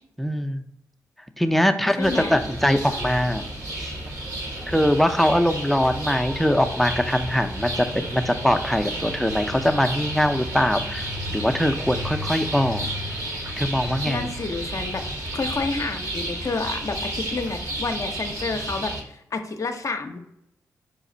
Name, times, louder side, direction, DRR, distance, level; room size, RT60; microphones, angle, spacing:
voice 1, 0.2-0.6 1.4-3.4 3.8-3.9 4.7-12.9 13.6-14.3, equal, ahead, 6 dB, 0.5 m, -22 dB
voice 2, 2.0-2.4 14.1-15.0 15.3-20.2, left 3 dB, 50° left, 6 dB, 0.6 m, -29 dB
sound 1, 2.0-19.0, right 1 dB, 50° right, 1.3 m, -32 dB
5.2 x 2.4 x 3.9 m, 0.83 s
supercardioid pair, 40°, 7 cm